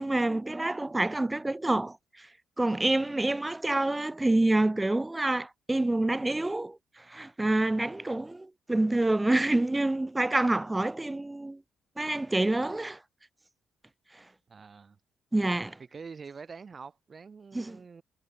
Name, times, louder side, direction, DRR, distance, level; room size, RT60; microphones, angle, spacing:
voice 1, 0.0-2.0 2.6-6.8 7.1-11.6 12.0-13.0 15.3-15.8 17.5-17.8, right 2 dB, 15° right, 0.4 m, -27 dB
voice 2, 14.5-15.0 15.9-18.0, right 5 dB, 40° right, 3.2 m, -45 dB
cardioid pair, 90°, 0 cm